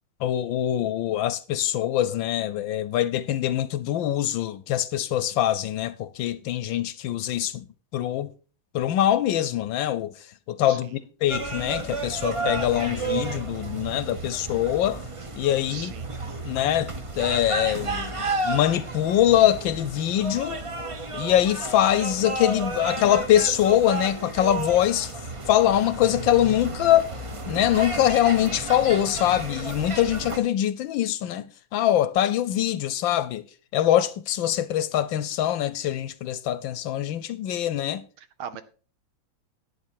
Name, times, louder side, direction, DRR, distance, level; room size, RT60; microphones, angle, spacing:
voice 1, 0.2-7.6 7.9-8.3 8.7-10.1 10.5-15.0 15.4-15.9 16.5-16.9 17.2-20.6 21.1-25.1 25.5-27.1 27.5-31.5 31.7-33.4 33.7-38.0, left 11 dB, 70° left, 1.3 m, -23 dB
voice 2, 10.6-11.0 15.7-16.2 38.2-38.6, right 9 dB, 75° right, 1.7 m, -40 dB
sound 1, 11.3-30.4, right 3 dB, 60° right, 0.3 m, -32 dB
11.0 x 9.0 x 4.6 m
omnidirectional pair, 2.3 m